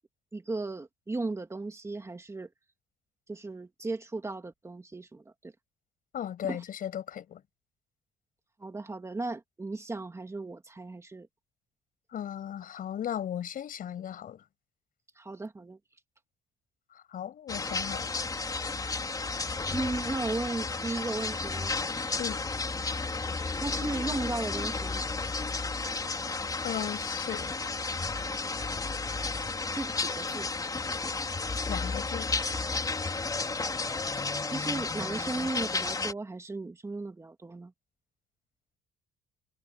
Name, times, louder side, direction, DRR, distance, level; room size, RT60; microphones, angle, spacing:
voice 1, 0.3-2.5 3.3-5.5 6.5-6.6 8.6-11.3 15.2-15.8 19.7-21.7 23.6-25.1 29.7-30.5 34.5-37.7, right 2 dB, 15° right, 2.4 m, -36 dB
voice 2, 6.1-7.4 12.1-14.4 16.9-18.1 22.2-22.4 26.6-27.6 31.7-32.3, left 10 dB, 55° left, 6.7 m, -36 dB
sound 1, 17.5-36.1, left 3 dB, 20° left, 4.3 m, -32 dB
cardioid pair, 110°, 17 cm